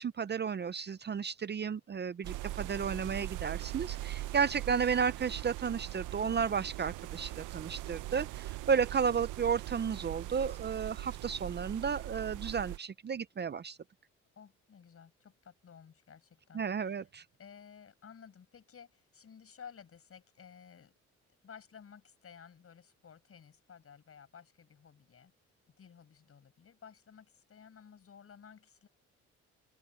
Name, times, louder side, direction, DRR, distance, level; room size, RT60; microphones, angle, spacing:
voice 1, 0.0-13.8 16.5-17.2, right 6 dB, 35° right, 0.7 m, -33 dB
sound 1, 2.2-12.8, right 16 dB, 90° right, 0.8 m, -41 dB
voice 2, 14.3-17.1 17.4-20.9 21.4-25.3 25.8-28.9, left 7 dB, 50° left, 6.7 m, -55 dB
open air
cardioid pair, 90°, 30 cm